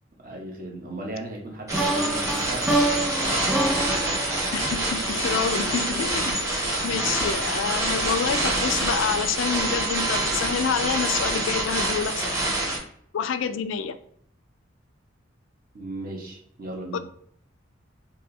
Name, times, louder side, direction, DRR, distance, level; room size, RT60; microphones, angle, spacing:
voice 1, 0.2-4.0 7.0-7.3 15.7-17.0, right 1 dB, 50° right, -1 dB, 1.1 m, -37 dB
sound 1, 1.7-5.7, right 1 dB, ahead, 0.4 m, -27 dB
sound 2, 1.7-12.8, right 1 dB, 15° right, 1.2 m, -26 dB
voice 2, 4.5-6.5 6.8-12.2 13.1-14.0 16.9-17.0, left 6 dB, 85° left, 11 dB, 0.4 m, -28 dB
4.7 x 2.7 x 2.7 m, 0.65 s
head